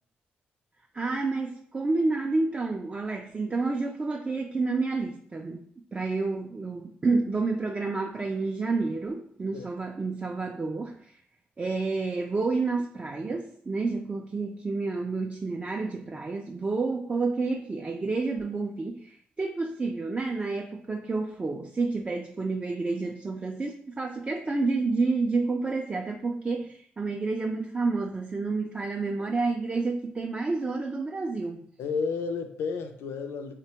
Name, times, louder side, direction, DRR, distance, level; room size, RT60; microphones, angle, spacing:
voice 1, 0.9-5.6 5.9-11.1 11.6-31.6, right 3 dB, 30° right, 2 dB, 0.3 m, -29 dB
voice 2, 31.8-33.5, left 5 dB, 85° left, 6 dB, 0.4 m, -31 dB
3.5 x 2.1 x 2.8 m, 0.63 s
cardioid pair, 65°, 4 cm